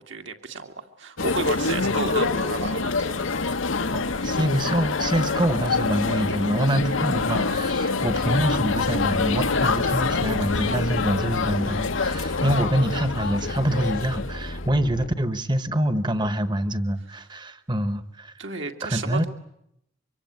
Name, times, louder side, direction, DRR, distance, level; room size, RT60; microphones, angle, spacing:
voice 1, 0.1-3.2 18.4-19.3, right 3 dB, 65° right, 5 dB, 2.4 m, -32 dB
sound 1, 1.2-14.7, left 4 dB, 70° left, 1.2 m, -26 dB
voice 2, 3.9-18.3 18.8-19.3, right 1 dB, 20° right, 12 dB, 1.3 m, -25 dB
sound 2, 8.0-15.1, left 1 dB, 45° left, 1.1 m, -36 dB
24.5 x 24.0 x 9.5 m, 0.78 s
head